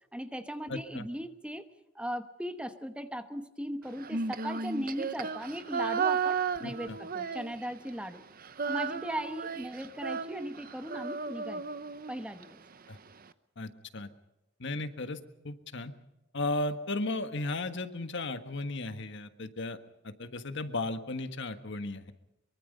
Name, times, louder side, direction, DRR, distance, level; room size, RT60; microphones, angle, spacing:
voice 1, 0.1-1.7 1.9-8.2 8.7-11.7 12.1-12.6, equal, 5° right, 9 dB, 1.0 m, -38 dB
voice 2, 0.7-1.1 6.6-7.0 12.9-13.0 13.6-14.1 14.6-15.2 15.4-15.9 16.3-19.8 20.0-22.1, left 2 dB, 60° left, 9 dB, 1.5 m, -35 dB
Female singing, 4.0-7.9 8.2-12.5, right 5 dB, 45° right, 0.9 m, -34 dB
23.5 x 23.5 x 5.4 m, 0.92 s
head